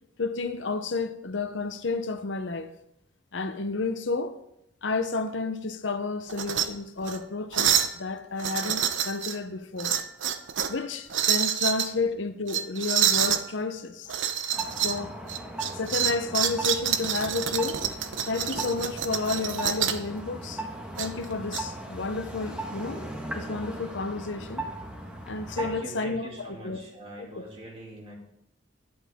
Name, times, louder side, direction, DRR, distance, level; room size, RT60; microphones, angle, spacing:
voice 1, 0.2-2.7 3.3-4.4 4.8-10.0 10.7-14.1 14.8-15.1 15.7-18.0 18.3-20.6 21.0-23.0 23.3-24.6 25.3-26.8 27.2-27.3, left 3 dB, 80° left, 0.8 m, -31 dB
sound 1, 6.3-6.7 7.0-7.2 7.5-8.0 8.4-9.4 9.8-10.8 11.1-11.9 12.5-13.4 14.1-15.0 15.3-20.1 21.0-21.6, right 9 dB, 85° right, 0.8 m, -27 dB
sound 2, 14.5-25.9, right 1 dB, 5° right, 1.6 m, -38 dB
voice 2, 25.5-28.1, right 1 dB, 30° right, 2.8 m, -43 dB
12.0 x 10.5 x 3.6 m
head